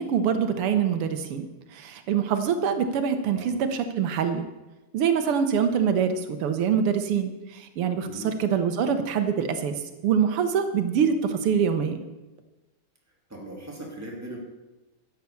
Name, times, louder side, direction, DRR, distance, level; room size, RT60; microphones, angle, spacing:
voice 1, 0.0-1.4 1.7-4.5 4.9-9.7 10.0-12.0, right 7 dB, 85° right, 8 dB, 1.9 m, -24 dB
voice 2, 8.0-8.4 13.3-14.4, right 1 dB, 5° right, -3 dB, 2.9 m, -39 dB
12.5 x 8.1 x 7.1 m, 1.1 s
omnidirectional pair, 2.4 m